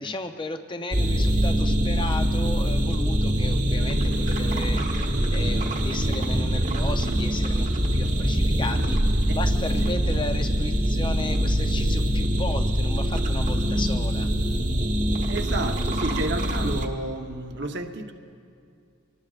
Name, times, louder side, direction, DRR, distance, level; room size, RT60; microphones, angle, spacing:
voice 1, 0.0-9.0 9.3-14.3, left 2 dB, 25° left, 7 dB, 0.6 m, -35 dB
sound 1, 0.9-16.9, equal, 40° right, 1.2 m, -24 dB
voice 2, 15.3-18.1, right 2 dB, 55° right, 4 dB, 0.9 m, -31 dB
25.0 x 19.0 x 2.4 m, 2.4 s
head